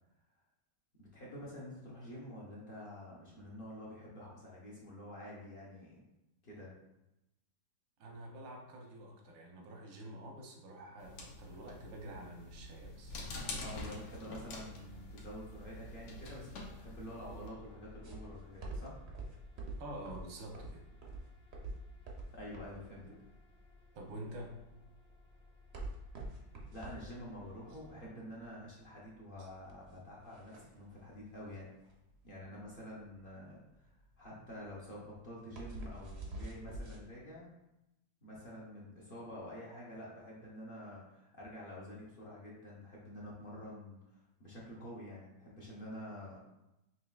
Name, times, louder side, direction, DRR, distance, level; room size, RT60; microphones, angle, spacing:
voice 1, 1.0-6.0 6.4-6.7 13.6-19.0 22.3-23.0 26.7-31.7 32.2-33.6 33.8-37.5 38.2-46.4, equal, 50° left, -5 dB, 0.6 m, -48 dB
voice 2, 8.0-13.2 19.8-20.9 23.0-23.2 23.9-24.6 29.4-29.5, right 1 dB, 90° right, 1 dB, 1.5 m, -48 dB
sound 1, 11.0-17.5, left 2 dB, 80° left, 1.4 m, -46 dB
sound 2, 14.4-28.1, left 2 dB, 35° left, 1.0 m, -58 dB
sound 3, 18.0-37.0, right 2 dB, 70° right, 0.6 m, -47 dB
5.5 x 3.0 x 2.3 m, 0.92 s
omnidirectional pair, 2.0 m